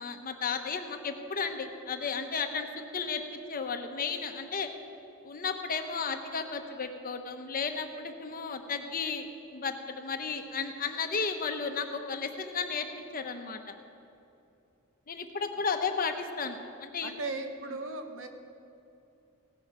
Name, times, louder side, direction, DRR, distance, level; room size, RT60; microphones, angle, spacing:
voice 1, 0.0-2.7 2.9-4.7 5.2-9.3 9.5-12.9 13.1-13.6 15.1-17.1, left 5 dB, 40° left, 6 dB, 1.0 m, -33 dB
voice 2, 17.0-18.3, right 3 dB, 60° right, 6 dB, 1.1 m, -37 dB
16.5 x 11.0 x 5.0 m, 2.7 s
head